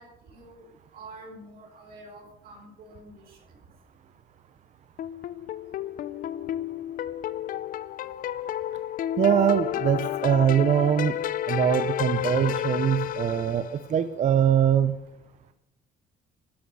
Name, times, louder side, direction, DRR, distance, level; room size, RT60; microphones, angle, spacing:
voice 1, 0.0-3.4, right 2 dB, 65° right, -1 dB, 5.2 m, -47 dB
sound 1, 5.0-13.9, left 12 dB, 55° left, 0.5 m, -31 dB
voice 2, 9.2-11.2 11.5-15.0, right 9 dB, 45° right, 11 dB, 0.7 m, -22 dB
13.0 x 10.5 x 6.3 m, 0.91 s
cardioid pair, 110°, 17 cm